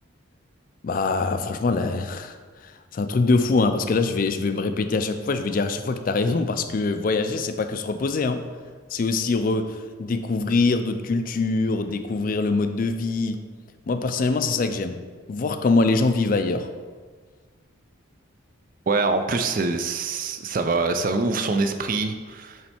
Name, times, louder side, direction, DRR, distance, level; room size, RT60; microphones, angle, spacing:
voice 1, 0.8-2.3 2.9-8.4 8.9-13.5 13.9-15.0 15.3-16.7, left 3 dB, 40° left, 9 dB, 0.3 m, -23 dB
voice 2, 18.9-22.6, right 3 dB, 40° right, 8 dB, 0.4 m, -24 dB
7.2 x 3.2 x 4.3 m, 1.5 s
head